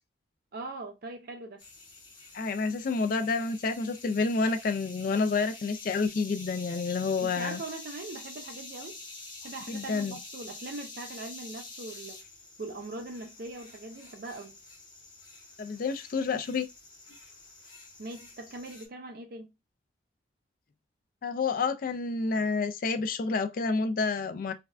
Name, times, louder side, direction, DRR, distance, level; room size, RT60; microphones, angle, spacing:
voice 1, 0.5-1.6 7.2-9.0 9.4-12.2 12.6-14.6 18.0-19.5, right 2 dB, 50° right, 0.4 m, -41 dB
sound 1, 1.6-18.9, left 3 dB, 25° left, 0.7 m, -47 dB
voice 2, 2.3-7.6 9.7-10.2 15.6-16.7 21.2-24.5, left 4 dB, 45° left, 0.3 m, -29 dB
3.3 x 2.2 x 2.4 m
head